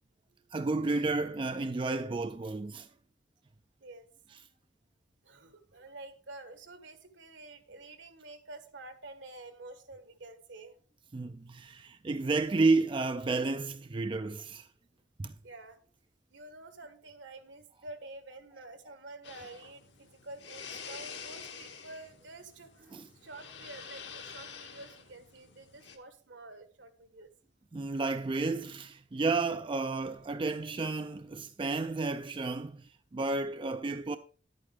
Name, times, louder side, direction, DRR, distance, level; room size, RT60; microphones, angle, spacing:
voice 1, 0.5-2.9 11.1-14.7 15.2-15.4 22.9-23.1 27.7-34.2, right 3 dB, 25° right, 0.4 m, -31 dB
voice 2, 5.2-10.8 15.4-15.9 16.3-27.3, right 2 dB, 75° right, 1.5 m, -49 dB
sound 1, 19.2-26.0, left 6 dB, 70° left, 1.5 m, -47 dB
10.5 x 8.7 x 3.4 m
head